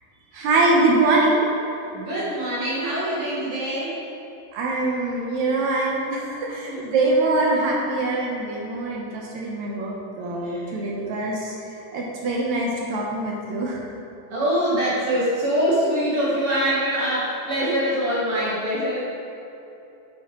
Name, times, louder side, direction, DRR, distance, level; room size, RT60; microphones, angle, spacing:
voice 1, 0.3-1.5 4.5-11.5 11.9-13.8, right 2 dB, 70° right, -3 dB, 2.1 m, -23 dB
voice 2, 1.9-4.0 6.7-6.8 10.4-10.7 14.3-19.0, equal, 50° right, -8 dB, 2.3 m, -24 dB
9.4 x 7.6 x 3.0 m, 2.9 s
omnidirectional pair, 3.7 m